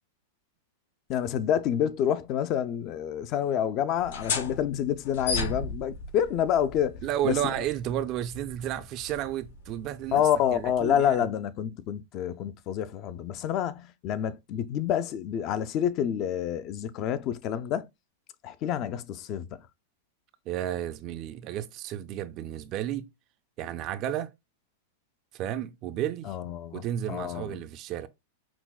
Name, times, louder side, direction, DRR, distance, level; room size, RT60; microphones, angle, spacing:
voice 1, 1.1-7.0 7.2-7.4 10.1-17.9 18.4-19.6 26.3-26.8 27.1-27.6, left 9 dB, 40° left, 0.4 m, -28 dB
sound 1, 3.9-11.2, left 3 dB, 80° left, 1.6 m, -37 dB
voice 2, 7.0-11.3 20.5-23.1 23.6-24.3 25.3-26.4 26.7-28.1, right 12 dB, 40° right, 0.4 m, -32 dB
5.9 x 2.1 x 2.3 m
hypercardioid pair, 130°, 0 cm